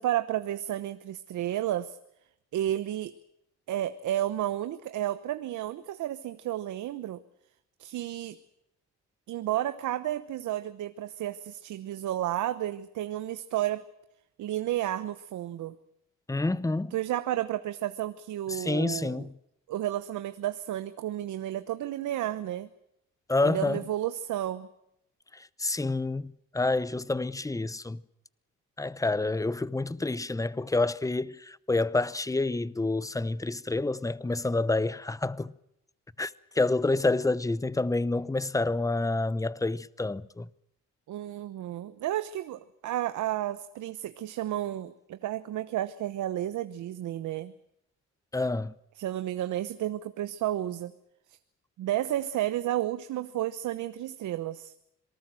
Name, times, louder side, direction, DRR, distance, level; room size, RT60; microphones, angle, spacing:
voice 1, 0.0-2.0 2.5-3.1 3.7-7.2 7.8-8.4 9.3-13.9 14.4-15.7 16.9-19.3 19.7-22.7 23.4-24.7 41.1-47.5 49.0-50.9 51.8-54.7, right 13 dB, 75° right, 1.0 m, -32 dB
voice 2, 16.3-16.9 18.5-19.3 23.3-23.8 25.3-28.0 28.8-35.5 36.2-40.5 48.3-48.7, left 2 dB, 10° left, 0.8 m, -28 dB
26.5 x 19.0 x 7.7 m
cardioid pair, 90°, 30 cm